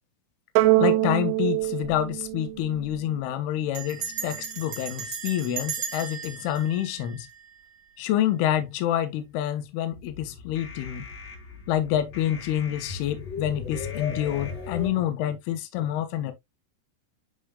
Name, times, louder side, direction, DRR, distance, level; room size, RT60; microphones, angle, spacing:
sound 1, 0.6-3.1, right 18 dB, 80° right, 2.5 m, -24 dB
voice 1, 0.8-7.3 8.0-11.1 11.7-16.3, left 11 dB, 75° left, 2.7 m, -27 dB
Bell, 1.6-2.0 2.3-2.4 2.6-3.0 3.7-7.8, right 7 dB, 45° right, 2.6 m, -36 dB
sound 2, 9.9-14.9, left 5 dB, 50° left, 1.9 m, -37 dB
10.0 x 4.5 x 2.2 m
omnidirectional pair, 4.9 m